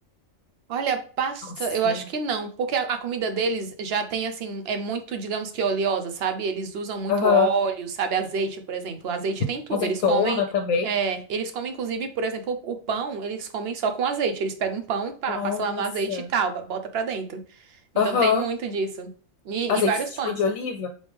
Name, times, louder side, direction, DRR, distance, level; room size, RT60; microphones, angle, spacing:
voice 1, 0.7-10.4 10.8-17.4 17.9-19.1 19.5-20.4, right 5 dB, 55° right, 8 dB, 0.8 m, -27 dB
voice 2, 7.1-7.5 9.7-10.9 15.3-16.3 18.0-18.4 19.7-19.9 20.2-20.9, left 6 dB, 75° left, 6 dB, 0.9 m, -23 dB
4.1 x 3.2 x 3.4 m, 0.41 s
omnidirectional pair, 1.4 m